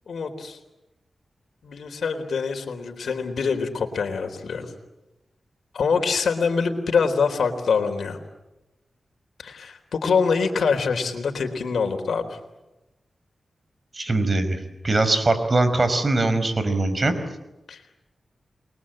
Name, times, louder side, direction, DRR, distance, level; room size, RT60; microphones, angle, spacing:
voice 1, 0.1-0.6 1.6-4.7 5.7-8.2 9.4-12.3 17.7-17.8, left 5 dB, 80° left, 5 dB, 3.9 m, -24 dB
voice 2, 13.9-14.6 14.8-17.1, right 2 dB, 40° right, 11 dB, 5.2 m, -21 dB
29.5 x 23.0 x 8.9 m, 0.98 s
cardioid pair, 60°, 0 cm